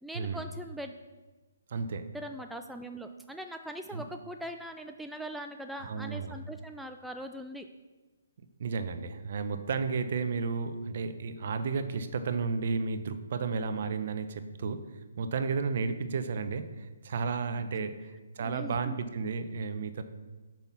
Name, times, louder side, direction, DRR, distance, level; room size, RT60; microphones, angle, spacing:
voice 1, 0.0-1.0 2.1-7.7 18.4-19.0, equal, ahead, 5 dB, 0.4 m, -41 dB
voice 2, 1.7-2.1 3.9-4.0 5.8-6.4 8.6-14.9 15.2-17.9 18.4-20.0, right 5 dB, 50° right, 10 dB, 0.8 m, -32 dB
6.7 x 5.8 x 6.0 m, 1.2 s
hypercardioid pair, 145°, 0 cm